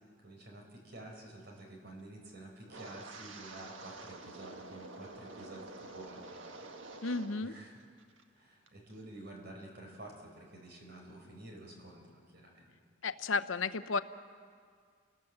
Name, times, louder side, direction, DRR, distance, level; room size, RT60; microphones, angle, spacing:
voice 1, 0.2-7.0 7.4-7.8 8.3-12.8, right 1 dB, 55° right, 1 dB, 5.0 m, -50 dB
Wind, 2.7-7.5 7.8-8.2 8.7-8.9, right 3 dB, 80° right, 1.7 m, -48 dB
voice 2, 7.0-7.5 13.0-14.0, left 4 dB, 90° left, 13 dB, 0.8 m, -33 dB
29.0 x 19.0 x 7.9 m, 2.1 s
head